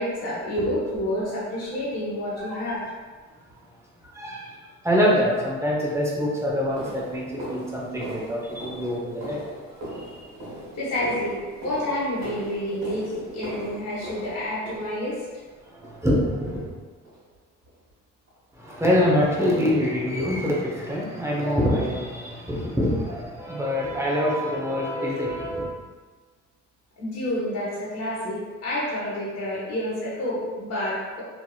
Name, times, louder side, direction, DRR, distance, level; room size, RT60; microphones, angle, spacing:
voice 1, 0.0-2.8 10.7-15.2 27.0-31.2, left 1 dB, 55° left, -8 dB, 1.1 m, -29 dB
voice 2, 4.1-4.5 4.8-9.4 10.0-10.3 15.7-16.6 18.5-25.7, equal, 10° right, -4 dB, 0.6 m, -25 dB
sound 1, 6.1-15.4 15.8-16.2 16.4-16.7 17.1-17.2 17.7-17.8 18.3-18.4, right 1 dB, 60° right, 1.1 m, -39 dB
2.9 x 2.6 x 2.3 m, 1.4 s
cardioid pair, 90°, 30 cm